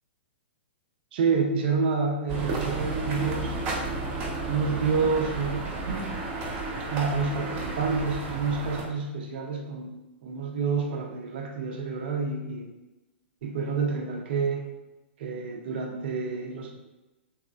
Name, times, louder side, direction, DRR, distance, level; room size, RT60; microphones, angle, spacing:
voice 1, 1.1-3.6 4.5-6.1 6.9-9.9 10.2-12.7 13.4-14.6 15.2-16.7, right 5 dB, 60° right, 2 dB, 0.5 m, -28 dB
sound 1, 2.3-8.8, right 3 dB, 35° right, 0.8 m, -32 dB
3.0 x 3.0 x 2.3 m, 1.0 s
hypercardioid pair, 115°, 6 cm